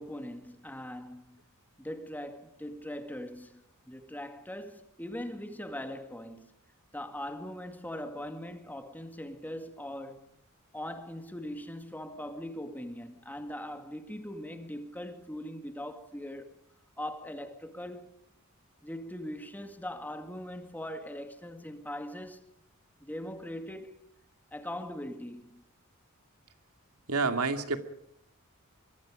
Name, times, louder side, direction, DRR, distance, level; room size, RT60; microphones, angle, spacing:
voice 1, 0.0-1.4 1.8-6.5 6.9-10.3 10.7-16.5 17.0-18.2 18.8-22.4 23.0-24.0 24.5-25.6, left 1 dB, 10° left, 2.1 m, -41 dB
voice 2, 27.1-27.8, right 4 dB, 80° right, 2.4 m, -28 dB
25.5 x 23.0 x 5.1 m
head